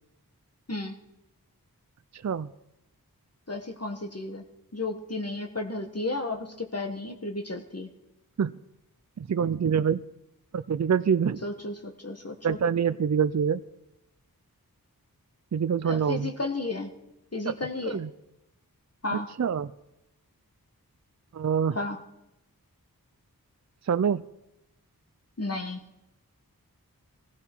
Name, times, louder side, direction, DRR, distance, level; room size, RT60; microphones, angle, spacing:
voice 1, 3.5-4.4 4.7-7.9 11.4-12.6 15.8-16.9 17.3-18.0 19.0-19.3 21.7-22.0 25.4-25.8, left 2 dB, 40° left, 3 dB, 1.5 m, -33 dB
voice 2, 9.2-10.0 10.5-11.4 12.4-13.6 15.5-16.3 17.5-17.6 17.9-18.1 19.1-19.7 21.3-21.8 23.9-24.2, right 7 dB, 50° right, 14 dB, 0.5 m, -25 dB
19.5 x 15.5 x 4.6 m, 0.91 s
wide cardioid pair, 45°, 37 cm